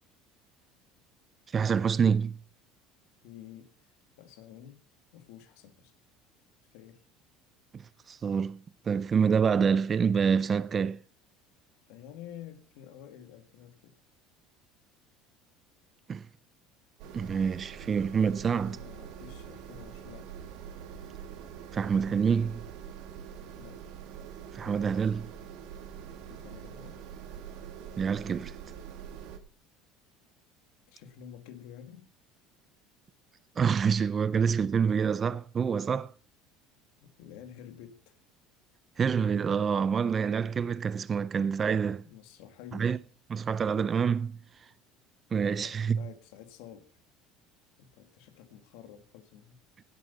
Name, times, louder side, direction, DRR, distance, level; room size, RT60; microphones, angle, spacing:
voice 1, 1.5-2.4 7.7-11.0 16.1-16.3 17.1-18.8 21.7-22.6 24.5-25.3 28.0-28.6 33.6-36.1 39.0-42.0 42.7-43.0 43.3-44.4 45.3-46.0, right 6 dB, 30° right, 0.5 m, -27 dB
voice 2, 3.2-3.7 4.2-4.8 5.1-5.9 6.6-7.0 11.9-14.0 18.6-20.3 23.5-23.8 24.6-25.1 26.3-27.0 30.9-32.1 37.0-38.2 41.9-42.9 45.5-46.9 47.8-49.6, left 10 dB, 80° left, 1.8 m, -50 dB
sound 1, 17.0-29.4, right 8 dB, 70° right, 1.7 m, -44 dB
16.5 x 8.2 x 4.1 m
supercardioid pair, 120°, 0 cm